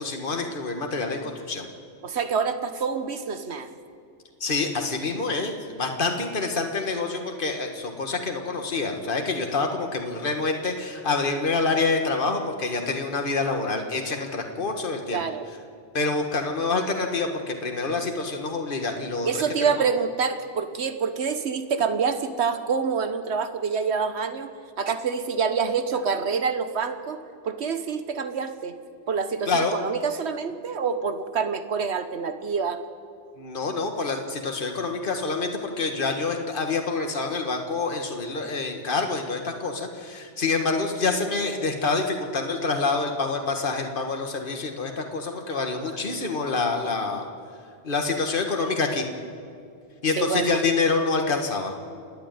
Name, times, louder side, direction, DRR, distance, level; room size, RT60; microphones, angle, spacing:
voice 1, 0.0-1.7 4.4-15.2 15.9-19.3 19.6-19.7 29.5-29.8 33.4-47.3 47.8-49.1 50.0-51.7, left 3 dB, 50° left, 4 dB, 1.7 m, -27 dB
voice 2, 2.0-3.7 15.1-15.5 19.2-24.5 24.8-27.2 27.4-28.8 29.1-32.8 45.5-46.0 50.2-50.6, right 6 dB, 70° right, 9 dB, 1.4 m, -27 dB
28.5 x 9.8 x 9.4 m, 2.3 s
omnidirectional pair, 1.2 m